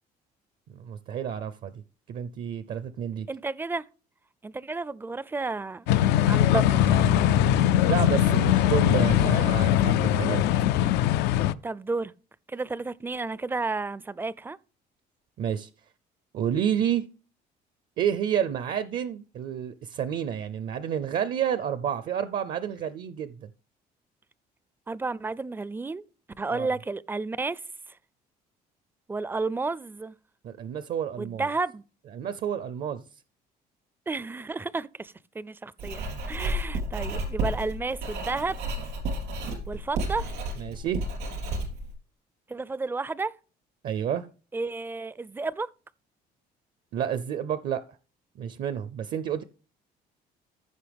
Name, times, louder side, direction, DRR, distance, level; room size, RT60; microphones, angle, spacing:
voice 1, 0.7-1.8 2.1-3.3 7.9-10.4 15.4-15.7 16.3-17.0 18.0-23.5 26.5-26.7 30.4-31.5 32.1-33.0 36.1-36.2 40.6-41.0 43.8-44.3 46.9-47.8 48.4-49.4, right 9 dB, 60° right, 0.6 m, -30 dB
voice 2, 3.3-3.8 4.4-5.9 6.3-7.1 11.6-12.1 12.5-14.6 24.9-26.0 26.4-27.6 29.1-30.1 31.2-31.8 34.1-38.8 39.7-40.3 42.5-43.3 44.5-45.7, right 3 dB, 10° right, 0.4 m, -32 dB
sound 1, 5.9-11.5, left 11 dB, 85° left, 0.4 m, -21 dB
Writing, 35.8-41.9, right 1 dB, 85° right, 3.8 m, -32 dB
15.0 x 5.7 x 3.5 m
cardioid pair, 110°, 17 cm